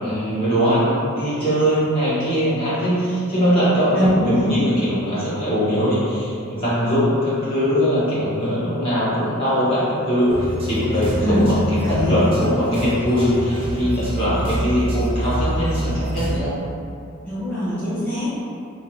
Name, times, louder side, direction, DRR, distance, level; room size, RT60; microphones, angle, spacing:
voice 1, 0.0-10.3 10.7-11.6 11.9-16.5, equal, 25° left, -12 dB, 1.2 m, -21 dB
voice 2, 3.9-4.6 11.2-11.5 11.8-12.2 17.2-18.3, equal, 5° left, -17 dB, 0.8 m, -22 dB
sound 1, 10.3-16.4, equal, 25° right, 0.5 m, -26 dB
3.2 x 2.9 x 2.7 m, 2.5 s
head